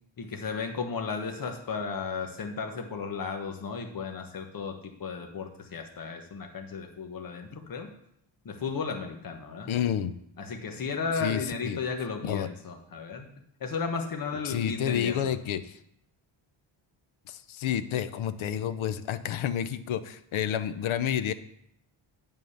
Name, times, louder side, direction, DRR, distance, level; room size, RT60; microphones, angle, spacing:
voice 1, 0.2-7.9 8.4-9.7 10.4-13.3 13.6-15.3, left 5 dB, 45° left, 4 dB, 1.3 m, -34 dB
voice 2, 9.7-10.1 11.2-11.8 12.3-12.5 14.5-15.8 17.3-21.3, left 9 dB, 80° left, 12 dB, 0.7 m, -30 dB
9.2 x 5.6 x 6.5 m, 0.73 s
wide cardioid pair, 135°, 48 cm